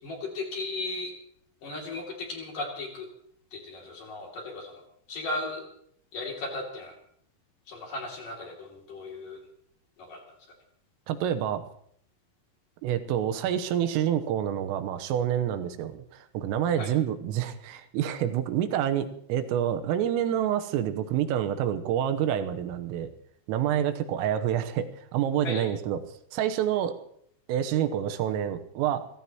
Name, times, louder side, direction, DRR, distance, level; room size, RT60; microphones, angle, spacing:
voice 1, 0.0-1.1 1.6-3.1 3.5-4.8 5.1-5.6 6.1-6.9 7.7-9.4 10.0-10.2 16.8-16.9 23.7-23.8 25.4-25.7, left 2 dB, 45° left, 0 dB, 3.9 m, -36 dB
voice 2, 11.1-11.6 12.8-23.1 23.5-26.0 26.3-27.0 27.5-29.0, right 10 dB, 85° right, 9 dB, 3.6 m, -27 dB
28.0 x 16.5 x 3.0 m, 0.67 s
omnidirectional pair, 5.9 m